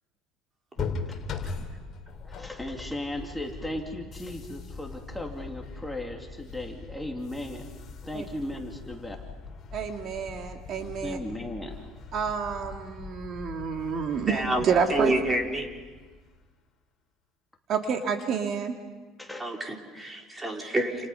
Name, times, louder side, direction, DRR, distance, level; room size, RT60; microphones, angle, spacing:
sound 1, 0.8-16.5, left 4 dB, 35° left, 3.6 m, -41 dB
voice 1, 1.1-1.6 2.2-7.7 8.0-9.2 11.0-11.9 19.2-19.4, left 1 dB, 5° left, 1 dB, 2.8 m, -36 dB
voice 2, 9.7-11.2 12.1-15.1 17.7-18.7, right 6 dB, 45° right, 3 dB, 2.2 m, -29 dB
voice 3, 14.2-15.7 19.4-21.1, right 1 dB, 15° right, 1 dB, 4.1 m, -28 dB
29.5 x 29.0 x 5.7 m, 1.4 s
cardioid pair, 135°, 0 cm